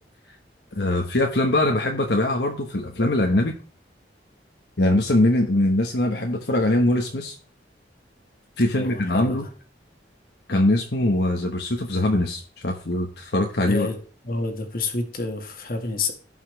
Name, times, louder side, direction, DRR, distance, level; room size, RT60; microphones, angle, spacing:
voice 1, 0.7-3.6 4.8-7.3 8.6-9.5 10.5-13.9, left 1 dB, 70° left, 2 dB, 1.2 m, -22 dB
voice 2, 8.7-9.4 13.7-14.0 14.2-16.1, left 3 dB, 50° left, 5 dB, 1.7 m, -28 dB
16.5 x 5.6 x 3.2 m, 0.41 s
head